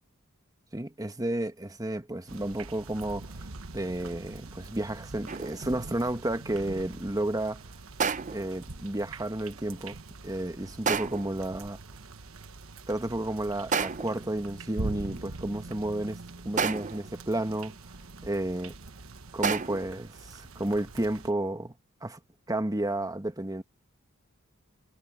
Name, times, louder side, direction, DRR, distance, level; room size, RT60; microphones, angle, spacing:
voice 1, 0.7-3.5 3.7-7.6 8.3-10.0 10.2-11.8 12.9-16.2 16.4-17.8 18.2-18.8 19.3-21.7 22.0-22.2 22.5-23.6, right 1 dB, 15° right, 1.3 m, -32 dB
sound 1, 2.3-21.3, right 2 dB, 70° right, 1.3 m, -43 dB
sound 2, 5.3-5.7 8.0-8.6 10.9-11.4 13.7-14.3 16.6-17.1 19.4-20.0, right 6 dB, 35° right, 0.7 m, -30 dB
head